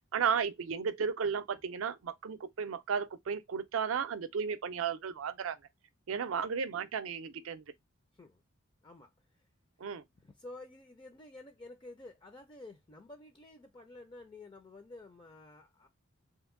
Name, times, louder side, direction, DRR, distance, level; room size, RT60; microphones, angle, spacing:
voice 1, 0.1-5.6 6.1-7.6 9.8-10.0, right 6 dB, 80° right, 0.4 m, -34 dB
voice 2, 8.8-9.5 10.2-15.9, left 2 dB, 25° left, 0.4 m, -51 dB
2.8 x 2.6 x 3.6 m
head